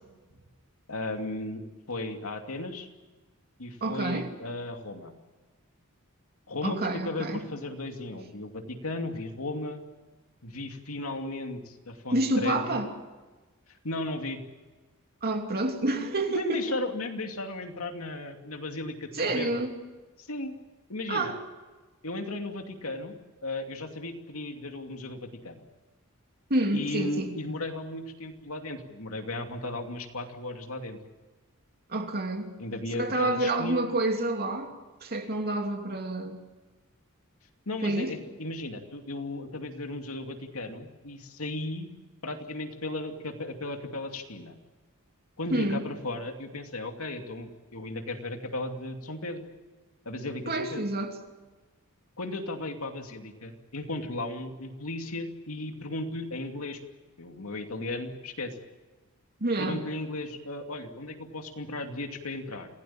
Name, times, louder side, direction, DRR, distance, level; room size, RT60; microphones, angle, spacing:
voice 1, 0.9-1.6 1.9-2.9 3.6-5.1 6.5-9.8 10.4-12.8 13.8-14.4 16.3-19.6 20.2-20.5 20.9-21.4 22.0-23.1 23.4-25.6 26.7-31.0 32.6-33.8 37.7-41.9 42.2-44.5 45.4-49.5 50.0-50.9 52.2-56.8 57.2-58.6 59.6-62.7, left 2 dB, 75° left, 2.6 m, -35 dB
voice 2, 3.8-4.3 6.6-7.4 12.1-12.9 15.2-16.6 19.2-19.8 21.1-21.4 26.5-27.3 31.9-32.5 33.0-34.7 35.0-36.4 37.8-38.1 45.5-45.8 50.5-51.2 59.4-59.8, right 2 dB, 45° right, 2.9 m, -28 dB
27.0 x 17.5 x 8.8 m
head